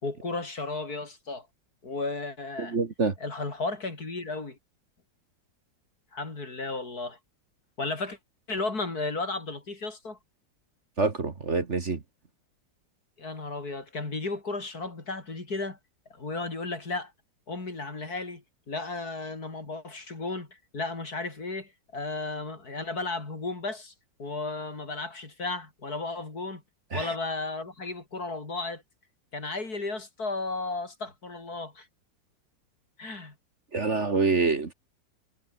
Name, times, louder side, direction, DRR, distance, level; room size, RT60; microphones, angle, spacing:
voice 1, 0.0-1.5 1.8-2.8 3.2-4.6 6.1-7.2 7.8-8.2 8.5-10.2 13.2-15.8 16.1-17.1 17.5-23.9 24.2-26.6 26.9-28.8 29.3-31.9 33.0-33.3, left 3 dB, 55° left, 4.6 m, -34 dB
voice 2, 2.6-3.1 11.0-12.0 26.9-27.1 33.7-34.7, right 4 dB, 40° right, 2.0 m, -26 dB
omnidirectional pair, 2.0 m